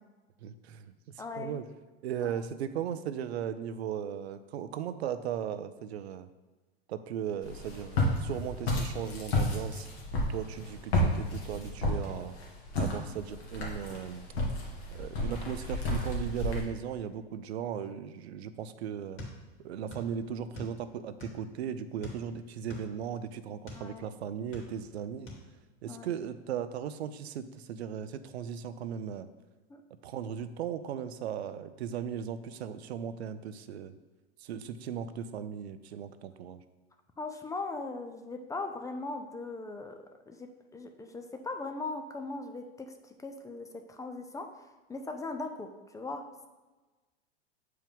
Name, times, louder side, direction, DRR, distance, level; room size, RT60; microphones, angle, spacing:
voice 1, 0.4-0.9 1.4-1.6 2.0-6.3 6.9-9.9 10.3-12.4 12.8-14.2 14.9-19.2 19.6-25.3 25.8-29.3 30.0-33.9 34.4-36.6, right 8 dB, 90° right, 12 dB, 0.5 m, -37 dB
voice 2, 1.2-1.6 2.2-2.4 23.7-24.1 25.9-26.1 29.7-29.8 37.2-40.0 40.3-42.9 43.2-44.5 44.9-46.5, left 3 dB, 10° left, 6 dB, 0.4 m, -39 dB
Walk footsteps, 7.4-16.6, left 1 dB, 85° left, 1.8 m, -32 dB
sound 1, 19.2-20.1 20.4-21.5 22.0-23.9 24.3-25.0 25.3-25.5, left 1 dB, 40° left, 2.2 m, -44 dB
7.4 x 4.7 x 3.5 m, 1.2 s
hypercardioid pair, 110°, 31 cm